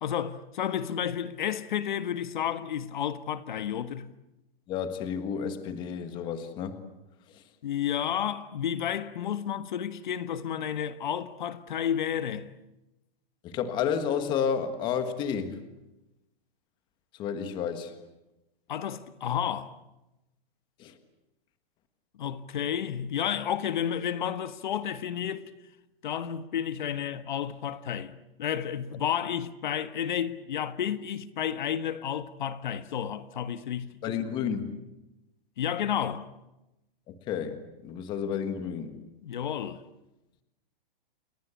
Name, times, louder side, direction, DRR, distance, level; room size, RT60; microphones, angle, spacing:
voice 1, 0.0-4.1 7.6-12.5 18.7-19.8 22.2-25.5 26.0-34.2 35.6-36.3 39.2-39.8, left 9 dB, 55° left, 1.5 m, -31 dB
voice 2, 4.7-6.8 7.3-7.4 13.4-15.6 17.1-17.9 20.8-21.0 34.0-34.7 37.1-39.0, left 7 dB, 15° left, 1.6 m, -31 dB
30.0 x 22.0 x 8.4 m
hypercardioid pair, 175°, 29 cm